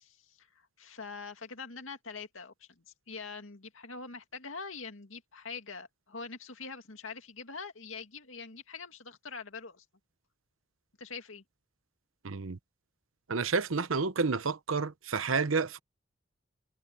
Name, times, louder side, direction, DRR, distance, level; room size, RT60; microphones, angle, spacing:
voice 1, 0.0-9.8 11.0-11.4, left 4 dB, 80° left, 2.3 m, -44 dB
voice 2, 12.2-12.6 13.3-15.8, right 4 dB, 80° right, 0.9 m, -30 dB
head